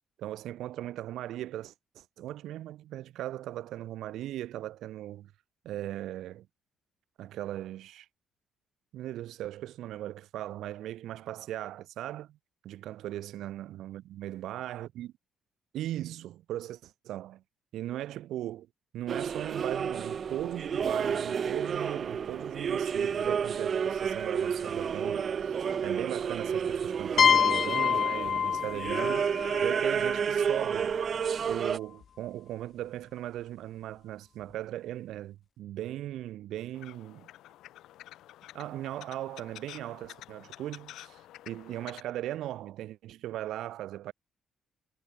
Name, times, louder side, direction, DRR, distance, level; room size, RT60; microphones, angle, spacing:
voice 1, 0.2-5.3 5.6-6.5 7.2-8.1 8.9-12.4 12.6-15.1 15.7-17.4 17.7-18.7 18.9-29.3 29.6-31.0 31.5-37.3 38.5-41.2 41.5-44.1, right 13 dB, 75° right, 1.8 m, -38 dB
sound 1, 19.1-31.8, right 7 dB, 35° right, 0.6 m, -31 dB
sound 2, 27.2-30.8, left 8 dB, 40° left, 0.4 m, -27 dB
sound 3, 36.7-42.0, left 14 dB, 80° left, 2.1 m, -50 dB
cardioid pair, 175°, 0 cm